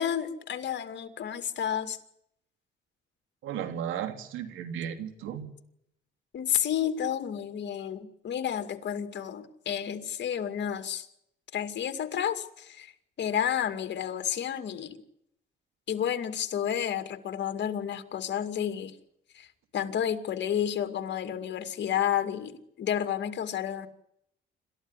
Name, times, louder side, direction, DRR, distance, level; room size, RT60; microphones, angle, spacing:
voice 1, 0.0-2.0 6.3-11.1 11.5-12.9 13.2-15.0 15.9-19.0 19.3-19.5 19.7-23.9, left 9 dB, 60° left, 8 dB, 2.4 m, -31 dB
voice 2, 3.4-5.5, right 9 dB, 90° right, 7 dB, 3.0 m, -35 dB
27.0 x 14.0 x 9.9 m, 0.76 s
cardioid pair, 90°, 20 cm